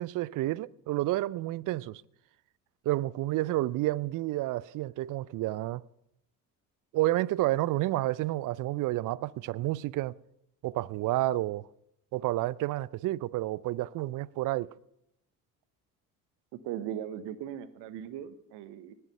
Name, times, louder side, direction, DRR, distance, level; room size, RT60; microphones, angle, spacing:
voice 1, 0.0-2.0 2.9-5.8 6.9-10.2 10.6-11.7 12.1-14.7, right 17 dB, 45° right, 0.5 m, -30 dB
voice 2, 16.6-18.9, right 10 dB, 60° right, 1.1 m, -38 dB
19.5 x 6.6 x 5.5 m
hypercardioid pair, 55°, 47 cm